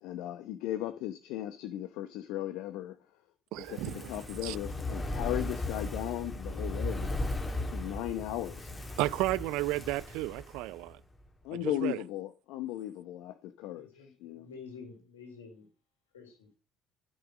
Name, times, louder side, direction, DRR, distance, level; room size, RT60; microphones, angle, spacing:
voice 1, 0.0-3.0 3.5-7.2 7.6-8.8 11.4-14.5, left 13 dB, 60° left, 1.0 m, -37 dB
voice 2, 3.5-4.1 4.4-4.6 9.0-11.0 11.5-12.0, right 18 dB, 60° right, 0.4 m, -33 dB
Fire, 3.6-10.9 11.2-11.3, left 2 dB, 20° left, 2.5 m, -37 dB
voice 3, 13.7-15.6 16.1-16.5, left 5 dB, 75° left, 3.7 m, -49 dB
12.0 x 6.4 x 6.4 m
figure-of-eight pair, 55°, 0 cm